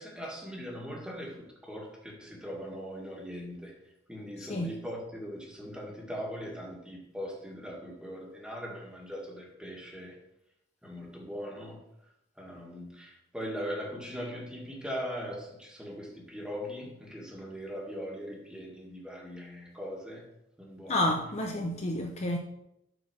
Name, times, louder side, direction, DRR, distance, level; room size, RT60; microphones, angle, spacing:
voice 1, 0.0-3.7 4.1-10.2 10.8-11.8 12.4-20.3 20.6-21.2, equal, 5° right, 1.7 m, -40 dB
voice 2, 4.4-4.7 20.9-22.4, left 1 dB, 35° left, 0.7 m, -30 dB
7.7 x 4.3 x 6.2 m
head